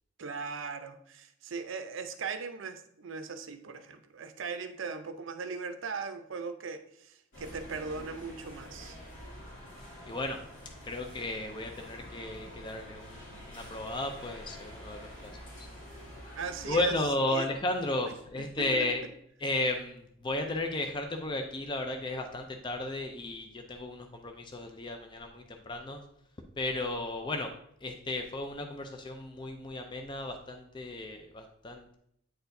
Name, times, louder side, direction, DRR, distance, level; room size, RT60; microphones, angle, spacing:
voice 1, 0.2-9.0 16.4-16.9 17.3-17.5 18.1-18.9, right 5 dB, 65° right, 9 dB, 0.5 m, -39 dB
sound 1, 7.3-17.1, equal, 65° left, 2.4 m, -47 dB
voice 2, 10.1-10.4 10.8-13.2 13.5-15.3 16.7-19.0 19.4-26.0 26.6-27.5 27.8-32.0, left 2 dB, 20° left, 5 dB, 0.4 m, -34 dB
8.9 x 4.3 x 2.6 m, 0.71 s
head